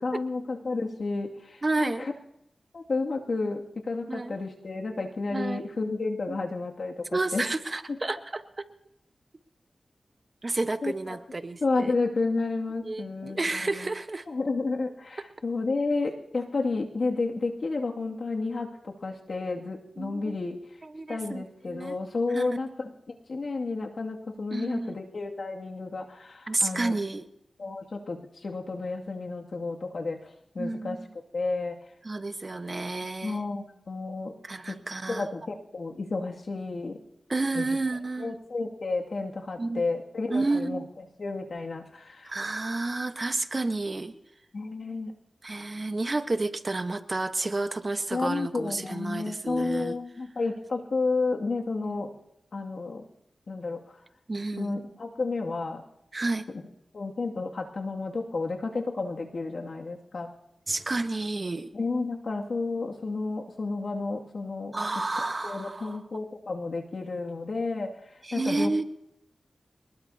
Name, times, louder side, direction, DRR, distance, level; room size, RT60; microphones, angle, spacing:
voice 1, 0.0-2.1 2.7-7.5 7.9-8.0 10.8-11.2 11.6-13.9 14.3-20.6 21.1-26.9 27.6-31.0 31.3-31.8 33.2-34.3 34.7-34.8 35.1-37.0 37.5-37.7 38.2-42.3 44.5-45.1 48.1-52.1 52.5-53.0 53.5-54.0 54.6-55.8 56.5-56.6 56.9-60.3 61.7-64.7 65.2-68.8, left 3 dB, 70° left, 1 dB, 2.3 m, -31 dB
voice 2, 1.6-2.1 4.1-4.4 5.3-5.6 6.3-6.4 7.1-8.4 10.4-11.9 12.8-14.2 20.0-20.3 20.9-22.0 22.3-22.5 24.5-24.9 26.5-27.3 30.6-31.1 32.0-33.4 34.4-35.3 37.3-38.4 39.6-39.8 40.3-40.8 42.2-44.1 45.4-49.9 51.8-51.9 54.3-54.8 56.1-56.4 60.7-61.7 64.7-66.0 68.2-68.8, right 2 dB, 45° right, 9 dB, 1.1 m, -30 dB
25.0 x 20.0 x 2.8 m, 0.79 s
cardioid pair, 55°, 0 cm